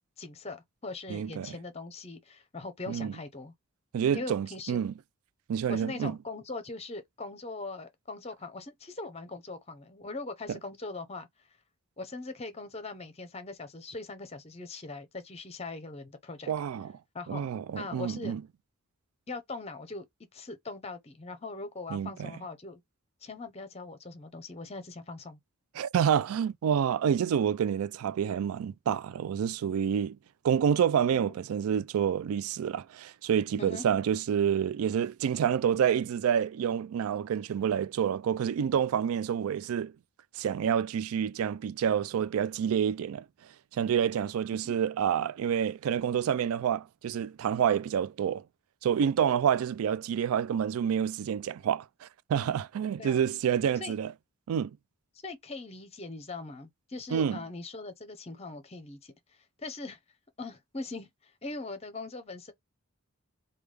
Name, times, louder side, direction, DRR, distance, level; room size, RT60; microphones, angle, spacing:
voice 1, 0.2-3.5 4.1-4.8 5.7-11.3 12.0-16.5 17.1-18.3 19.3-20.1 20.3-22.8 23.2-25.4 31.1-31.3 33.6-33.8 44.6-44.7 53.0-53.2 53.8-53.9 55.2-59.1 59.6-60.0 60.4-62.5, left 3 dB, 30° left, 0.7 m, -41 dB
voice 2, 1.1-1.6 2.9-3.1 3.9-4.9 5.5-6.2 10.5-10.6 16.5-16.9 17.3-18.4 21.9-22.3 25.8-30.2 30.4-39.9 40.3-43.2 43.7-48.4 48.8-54.1 54.5-54.8 57.1-57.4, right 8 dB, 85° right, 0.3 m, -28 dB
3.5 x 2.3 x 3.3 m
head